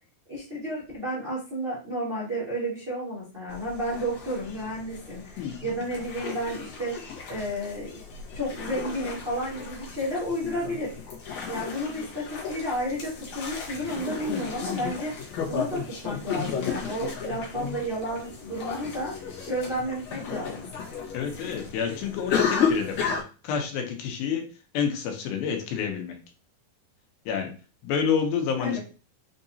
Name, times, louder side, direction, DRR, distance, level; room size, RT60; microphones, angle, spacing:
voice 1, 0.3-7.0 7.3-8.0 8.3-10.9 11.5-15.1 15.5-19.1 19.5-20.6 28.6-28.8, equal, 90° right, 0.5 m, -31 dB
sound 1, 3.5-23.2, left 6 dB, 60° left, 1.9 m, -33 dB
voice 2, 21.1-24.5 24.7-26.2 27.3-27.5 27.8-28.8, left 7 dB, 80° left, 2.6 m, -29 dB
5.8 x 2.8 x 2.7 m
omnidirectional pair, 4.2 m